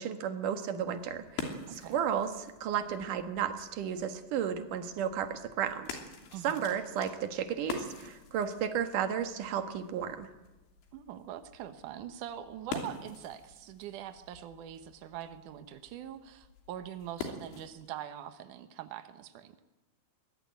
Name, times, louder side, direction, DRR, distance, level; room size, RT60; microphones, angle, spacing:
voice 1, 0.0-2.3 2.6-6.0 6.4-10.3, right 8 dB, 60° right, 7 dB, 2.4 m, -33 dB
sound 1, 0.8-17.9, left 4 dB, 80° left, 5.4 m, -46 dB
voice 2, 1.7-2.0 6.3-6.6 10.9-19.6, right 11 dB, 90° right, 9 dB, 1.7 m, -43 dB
22.5 x 18.5 x 9.4 m, 1.1 s
omnidirectional pair, 5.4 m